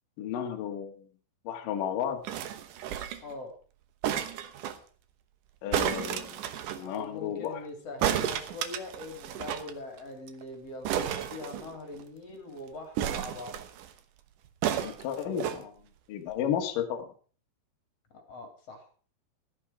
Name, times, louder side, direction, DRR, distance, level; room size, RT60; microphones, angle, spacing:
voice 1, 0.2-1.0 1.4-2.2 5.6-6.4 6.8-7.6 14.8-15.7 16.1-17.1, left 9 dB, 60° left, 4 dB, 2.7 m, -33 dB
sound 1, 2.2-3.3 4.0-4.8 5.7-6.8 8.0-9.7 10.0-10.1 10.3-10.4 10.8-12.0 13.0-13.9 14.6-15.6 16.3-16.4, right 10 dB, 80° right, 1.8 m, -32 dB
voice 2, 3.2-3.5 6.8-13.6 18.1-18.9, left 2 dB, 40° left, 4 dB, 3.4 m, -42 dB
15.5 x 11.0 x 4.8 m, 0.40 s
omnidirectional pair, 5.3 m